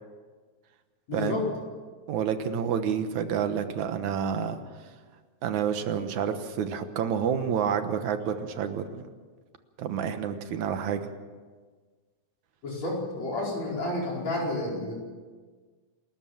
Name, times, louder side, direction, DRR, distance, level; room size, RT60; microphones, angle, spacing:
voice 1, 1.1-1.5 12.6-14.9, left 2 dB, 60° left, -3 dB, 6.1 m, -30 dB
voice 2, 2.1-4.6 5.4-9.0 9.8-11.0, right 8 dB, 75° right, 9 dB, 2.5 m, -29 dB
28.0 x 13.5 x 7.2 m, 1.5 s
omnidirectional pair, 3.4 m